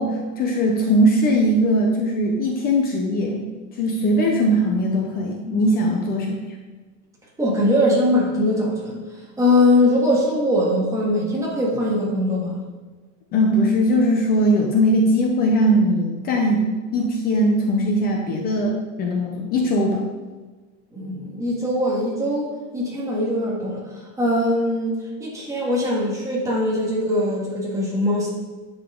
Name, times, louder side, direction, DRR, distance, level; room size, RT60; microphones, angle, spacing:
voice 1, 0.0-3.4 3.7-6.4 13.3-20.0, equal, 20° left, 0 dB, 0.6 m, -20 dB
voice 2, 7.4-9.0 9.4-12.6 20.9-28.3, left 1 dB, 5° right, -5 dB, 1.8 m, -21 dB
10.0 x 7.3 x 3.7 m, 1.3 s
supercardioid pair, 165°, 49 cm